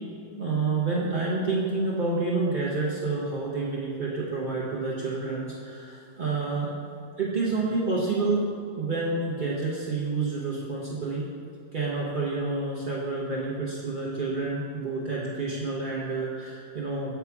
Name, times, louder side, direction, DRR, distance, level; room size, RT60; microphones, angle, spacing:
voice 1, 0.4-6.7 7.2-11.3 11.7-17.2, right 3 dB, 50° right, -6 dB, 0.5 m, -29 dB
7.3 x 6.9 x 4.7 m, 2.4 s
omnidirectional pair, 2.1 m